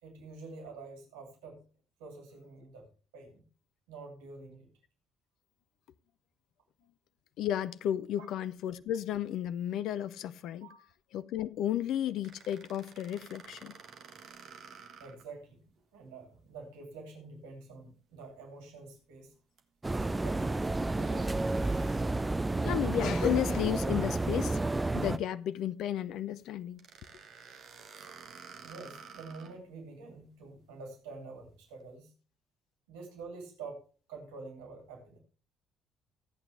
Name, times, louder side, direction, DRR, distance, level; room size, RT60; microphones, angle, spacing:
voice 1, 0.0-1.6 2.0-2.9 3.1-3.4 3.9-4.7 8.2-8.3 10.6-10.9 15.0-15.6 15.9-19.3 20.0-21.5 28.6-32.1 32.9-33.8 34.1-35.2, right 3 dB, 65° right, 2.5 m, -47 dB
voice 2, 7.4-10.7 11.1-13.7 22.6-24.6 24.9-26.8, left 11 dB, 55° left, 0.5 m, -33 dB
sound 1, 12.2-15.3 15.8-15.9 19.6-19.7 21.0-22.9 26.8-29.6, right 6 dB, 50° right, 1.5 m, -52 dB
sound 2, 19.8-25.2, right 2 dB, 15° right, 0.5 m, -30 dB
14.0 x 8.8 x 3.3 m
figure-of-eight pair, 50°, 0 cm